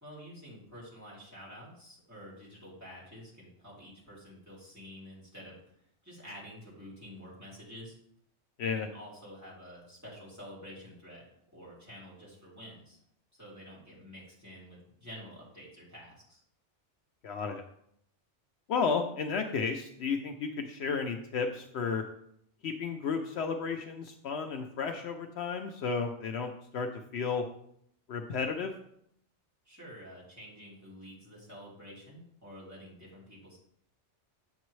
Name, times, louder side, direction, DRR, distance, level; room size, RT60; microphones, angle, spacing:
voice 1, 0.0-5.6 6.0-7.9 8.6-11.3 11.5-13.0 13.4-16.4 29.6-33.6, equal, 15° right, -7 dB, 2.9 m, -49 dB
voice 2, 17.2-17.6 18.7-22.0 22.6-26.9 27.1-27.4 28.1-28.7, left 5 dB, 70° left, 5 dB, 0.9 m, -33 dB
7.3 x 7.0 x 3.1 m, 0.71 s
omnidirectional pair, 1.2 m